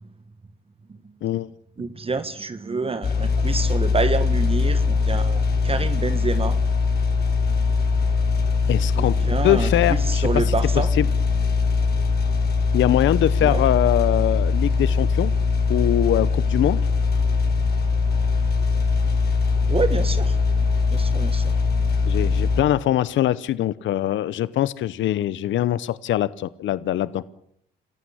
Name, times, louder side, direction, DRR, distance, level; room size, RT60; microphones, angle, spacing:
voice 1, 1.8-6.6 9.0-10.9 13.4-13.6 19.7-20.4 20.9-21.6, right 4 dB, 30° right, 11 dB, 1.5 m, -27 dB
sound 1, 3.0-22.6, left 4 dB, 50° left, 5.4 m, -21 dB
voice 2, 8.7-9.2 9.4-10.5 11.0-11.1 12.7-15.3 15.7-16.8 22.1-27.2, left 12 dB, 75° left, 18 dB, 0.9 m, -22 dB
27.5 x 15.0 x 10.0 m, 0.71 s
cardioid pair, 90°, 20 cm